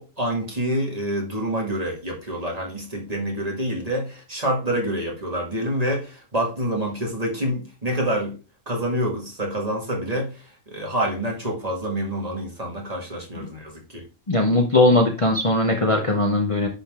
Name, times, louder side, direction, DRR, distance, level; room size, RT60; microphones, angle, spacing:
voice 1, 0.0-8.4 8.7-10.3 10.7-14.0, right 1 dB, 30° right, 2.2 m, -27 dB
voice 2, 14.3-16.7, left 2 dB, 30° left, 0.9 m, -19 dB
10.5 x 3.9 x 3.6 m
omnidirectional pair, 1.3 m